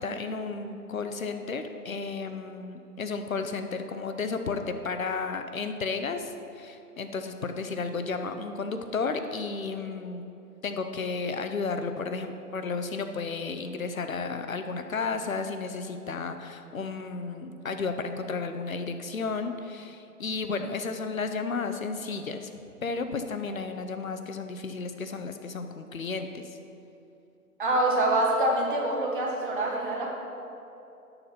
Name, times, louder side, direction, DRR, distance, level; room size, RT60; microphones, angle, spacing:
voice 1, 0.0-10.3 10.6-22.5 22.8-26.5, left 4 dB, 60° left, 8 dB, 0.9 m, -33 dB
voice 2, 27.6-30.2, right 1 dB, 35° right, -2 dB, 1.5 m, -25 dB
10.5 x 6.9 x 4.2 m, 2.8 s
figure-of-eight pair, 150°, 47 cm